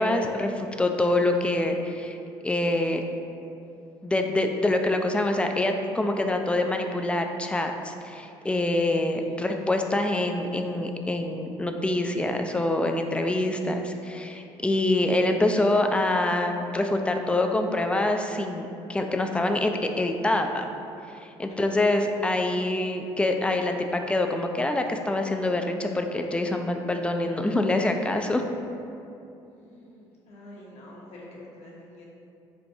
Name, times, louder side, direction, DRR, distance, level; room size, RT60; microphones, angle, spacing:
voice 1, 0.0-2.2 2.4-3.0 4.0-20.6 21.2-28.4, left 2 dB, 10° left, 4 dB, 0.3 m, -25 dB
voice 2, 21.5-21.8 29.5-32.1, left 1 dB, 65° left, -4 dB, 0.9 m, -47 dB
4.7 x 2.5 x 2.6 m, 2.6 s
supercardioid pair, 70°, 12 cm